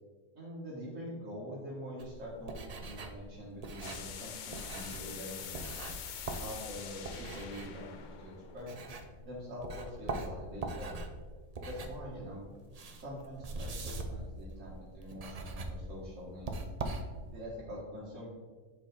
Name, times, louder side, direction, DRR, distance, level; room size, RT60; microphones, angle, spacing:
voice 1, 0.4-5.7 6.4-8.8 9.3-11.0 11.7-12.5 12.9-16.5 17.3-18.3, equal, 70° right, -7 dB, 1.8 m, -44 dB
sound 1, 2.0-9.3 9.6-17.5, right 2 dB, 45° right, 0.5 m, -42 dB
sound 2, 3.8-9.5, left 8 dB, 85° left, 0.4 m, -46 dB
6.7 x 4.9 x 4.0 m, 1.4 s
omnidirectional pair, 1.4 m